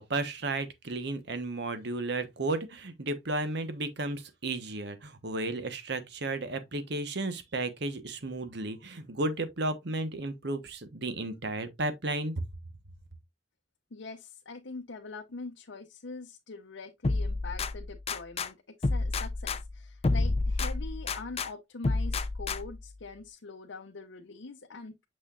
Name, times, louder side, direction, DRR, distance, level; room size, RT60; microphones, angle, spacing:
voice 1, 0.0-12.4, right 2 dB, 65° right, 1.1 m, -33 dB
voice 2, 13.9-25.0, left 3 dB, 80° left, 0.7 m, -43 dB
sound 1, 17.0-18.5 18.8-21.5 21.8-22.9, left 3 dB, 35° left, 0.5 m, -30 dB
6.5 x 6.3 x 2.4 m
head